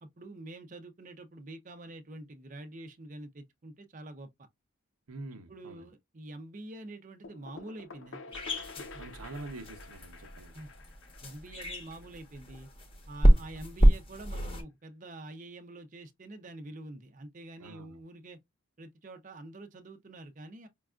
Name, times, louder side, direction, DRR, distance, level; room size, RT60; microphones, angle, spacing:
voice 1, 0.0-4.3 5.5-8.2 8.8-9.1 10.5-10.7 11.2-12.7 13.1-18.4 18.8-20.7, right 2 dB, 35° right, 0.5 m, -46 dB
voice 2, 5.1-5.9 9.0-10.6 13.3-13.5 17.6-18.0, right 2 dB, 90° right, 0.8 m, -45 dB
sound 1, 7.2-12.8, left 4 dB, 60° left, 0.7 m, -49 dB
sound 2, 8.3-14.6, equal, 25° left, 0.9 m, -28 dB
5.2 x 2.3 x 2.3 m
head